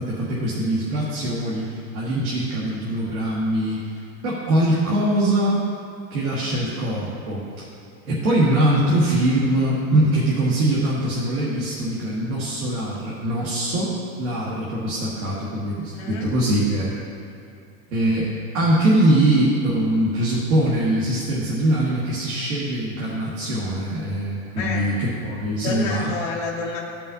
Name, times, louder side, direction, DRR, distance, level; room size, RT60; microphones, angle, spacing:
voice 1, 0.0-3.9 4.2-5.6 6.1-7.4 8.1-16.9 17.9-26.1, right 1 dB, 75° right, -6 dB, 1.7 m, -22 dB
voice 2, 15.9-16.3 24.6-24.9 25.6-26.8, left 4 dB, 30° left, -5 dB, 0.4 m, -29 dB
14.0 x 5.5 x 2.7 m, 2.5 s
supercardioid pair, 180°, 42 cm